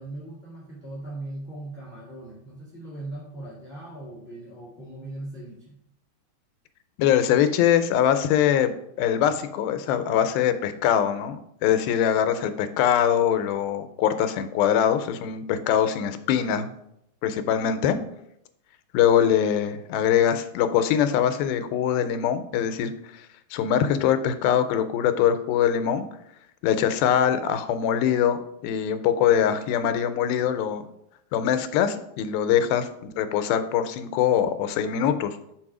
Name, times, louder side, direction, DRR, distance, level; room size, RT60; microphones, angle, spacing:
voice 1, 0.0-5.8, right 2 dB, 40° left, -7 dB, 0.8 m, -39 dB
voice 2, 7.0-16.7 17.2-18.0 18.9-26.1 26.6-30.9 31.3-32.9 33.2-35.4, left 9 dB, 85° left, 10 dB, 2.4 m, -23 dB
5.8 x 4.6 x 4.8 m, 0.78 s
omnidirectional pair, 4.1 m